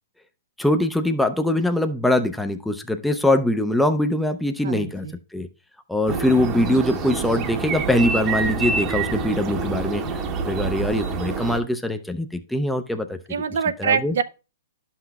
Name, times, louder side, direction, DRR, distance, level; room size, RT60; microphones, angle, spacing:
voice 1, 0.6-5.1 5.3-5.5 5.9-13.2 13.8-14.2, left 1 dB, 5° left, 0.5 m, -22 dB
voice 2, 4.6-5.1 13.3-14.2, right 6 dB, 75° right, 0.5 m, -24 dB
sound 1, 6.1-11.6, right 4 dB, 35° right, 0.9 m, -27 dB
11.0 x 5.8 x 2.3 m
hypercardioid pair, 125°, 0 cm